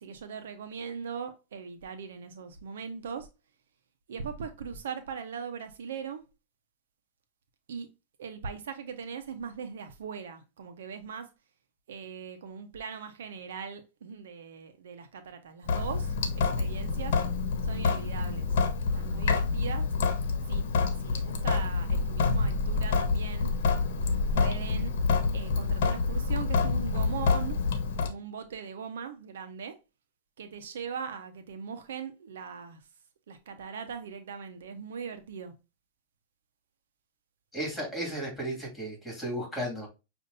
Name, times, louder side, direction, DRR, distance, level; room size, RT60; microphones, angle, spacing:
voice 1, 0.0-3.3 4.1-6.2 7.7-7.9 8.2-11.3 11.9-17.2 17.6-18.5 18.9-19.9 20.5-20.6 21.0-23.5 24.3-24.9 25.3-27.6 28.0-29.7 30.4-32.8 33.3-35.5, right 6 dB, 80° right, 0.8 m, -40 dB
Sink (filling or washing) / Drip, 15.7-28.1, left 4 dB, 75° left, 1.0 m, -27 dB
voice 2, 37.5-39.9, right 1 dB, 5° left, 2.6 m, -34 dB
6.4 x 2.6 x 2.6 m
hypercardioid pair, 130°, 0 cm